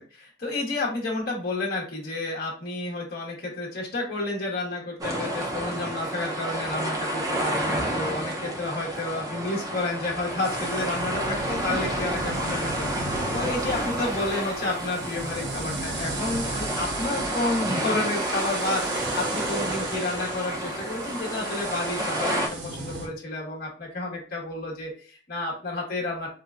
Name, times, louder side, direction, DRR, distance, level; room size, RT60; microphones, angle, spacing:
voice 1, 0.0-22.4 22.8-26.3, left 2 dB, 55° left, -4 dB, 1.0 m, -31 dB
sound 1, 5.0-22.5, right 1 dB, 20° right, 0.6 m, -30 dB
sound 2, 10.4-23.1, right 2 dB, 70° right, 0.8 m, -35 dB
4.2 x 2.2 x 2.4 m, 0.40 s
head